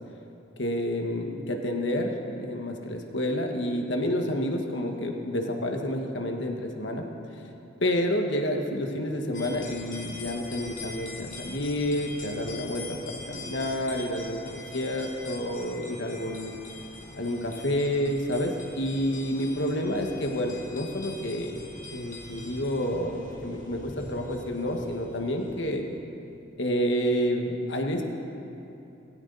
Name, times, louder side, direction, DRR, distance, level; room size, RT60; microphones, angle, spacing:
voice 1, 0.6-7.0 7.8-13.0 13.3-16.5 17.2-21.5 21.9-25.8 26.6-28.0, equal, 70° left, 2 dB, 1.6 m, -29 dB
sound 1, 9.3-25.8, left 3 dB, 45° left, 2.0 m, -43 dB
20.0 x 16.5 x 4.1 m, 2.9 s
head